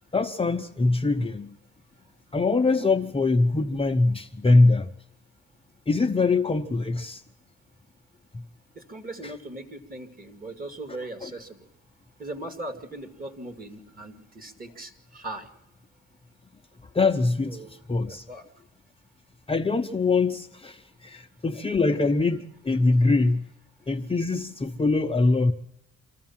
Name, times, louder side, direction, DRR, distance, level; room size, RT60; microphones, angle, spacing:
voice 1, 0.1-1.5 2.3-4.9 5.9-7.2 8.3-8.4 9.2-9.3 11.2-11.3 16.9-18.3 19.5-23.5 23.9-25.5, left 3 dB, 20° left, 0.7 m, -23 dB
voice 2, 8.7-11.7 12.2-15.5 17.4-17.7 18.0-18.4, right 2 dB, 30° right, 2.5 m, -39 dB
25.0 x 14.5 x 7.3 m
cardioid pair, 90°, 30 cm